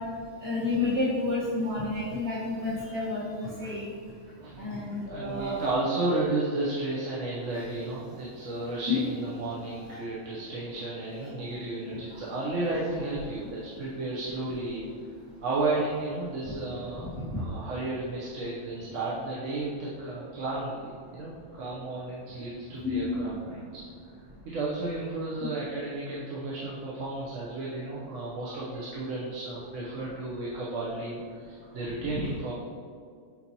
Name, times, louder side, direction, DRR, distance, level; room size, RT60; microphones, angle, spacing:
voice 1, 0.4-3.9 4.6-5.6 8.9-9.0 9.7-9.8 16.4-16.5 17.0-17.4 22.8-23.3 28.5-28.6 32.1-32.3, left 3 dB, 60° right, -10 dB, 1.7 m, -30 dB
voice 2, 5.1-14.9 15.4-17.1 17.4-23.8 24.4-32.5, right 2 dB, 80° right, -6 dB, 1.2 m, -33 dB
9.0 x 4.1 x 2.9 m, 2.1 s
omnidirectional pair, 1.3 m